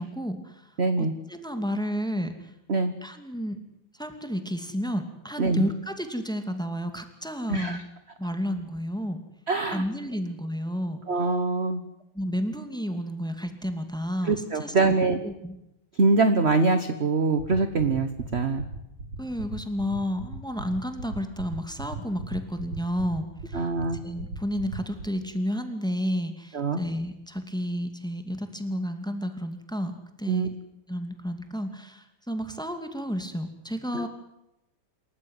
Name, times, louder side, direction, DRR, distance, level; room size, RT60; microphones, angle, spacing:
voice 1, 0.0-0.7 1.0-2.5 3.0-3.6 4.0-7.8 8.2-9.2 9.7-11.0 12.1-14.9 15.2-15.6 19.2-23.6 24.0-29.9 30.2-30.5 30.9-34.1, equal, ahead, 7 dB, 2.3 m, -31 dB
voice 2, 0.8-1.1 2.7-2.9 5.4-5.6 7.5-7.8 9.5-9.8 11.1-11.8 14.2-15.2 16.0-18.6 23.5-24.0 26.5-26.8 30.3-30.5 33.9-34.1, right 3 dB, 35° right, 10 dB, 1.2 m, -24 dB
sound 1, 17.4-25.0, right 2 dB, 80° right, 4.7 m, -37 dB
27.0 x 14.5 x 9.4 m, 0.86 s
omnidirectional pair, 2.4 m